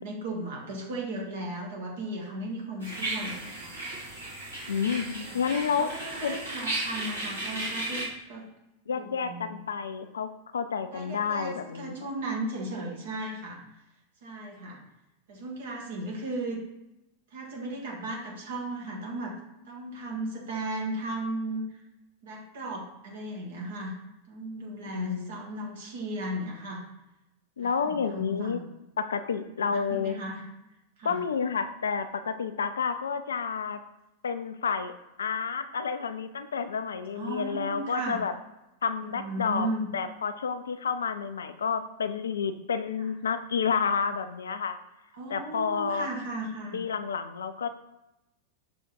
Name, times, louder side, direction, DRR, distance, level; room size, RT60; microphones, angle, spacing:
voice 1, 0.0-3.7 4.8-5.4 5.8-8.5 8.9-9.6 10.9-13.6 14.2-14.8 15.3-16.6 17.3-19.3 19.7-21.8 22.2-23.9 24.3-26.8 27.6-28.7 29.6-30.4 31.0-31.2 37.2-38.2 39.0-39.9 45.1-46.8, right 1 dB, 60° right, -2 dB, 1.8 m, -36 dB
sound 1, 2.8-8.0, right 2 dB, 75° right, 2.1 m, -35 dB
voice 2, 4.7-5.0 5.3-5.9 6.2-6.4 8.9-11.9 24.9-25.3 27.6-28.6 29.0-30.2 31.0-33.8 34.2-34.9 35.2-38.3 38.8-39.7 39.9-44.8 45.3-46.1 46.7-47.7, left 6 dB, 70° left, 10 dB, 0.4 m, -30 dB
6.4 x 3.5 x 4.4 m, 0.92 s
figure-of-eight pair, 90°, 0 cm